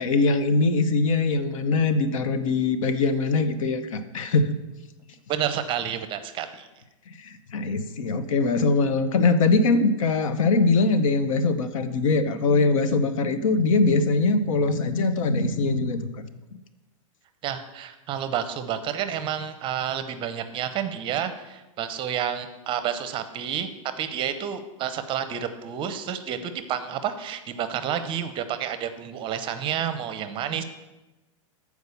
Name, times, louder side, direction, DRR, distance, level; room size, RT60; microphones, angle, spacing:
voice 1, 0.0-4.5 7.5-16.2, left 3 dB, 80° left, 11 dB, 0.8 m, -22 dB
voice 2, 5.3-6.7 17.4-23.7 24.0-30.6, right 9 dB, 30° right, 10 dB, 0.7 m, -30 dB
8.1 x 4.7 x 6.9 m, 1.1 s
hypercardioid pair, 130°, 17 cm